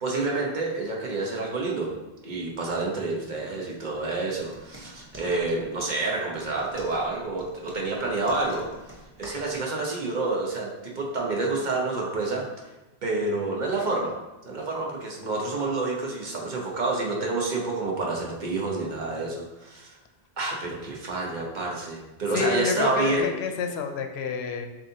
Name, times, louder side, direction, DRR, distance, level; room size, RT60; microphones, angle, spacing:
voice 1, 0.0-1.9 2.2-8.7 9.2-12.4 13.0-14.1 14.4-19.9 20.4-23.3, right 3 dB, 45° right, -1 dB, 1.0 m, -28 dB
sound 1, 4.3-9.6, right 1 dB, 15° right, 0.8 m, -48 dB
voice 2, 22.3-24.7, left 5 dB, 75° left, 5 dB, 0.8 m, -28 dB
7.1 x 2.7 x 2.7 m, 1.1 s
omnidirectional pair, 1.1 m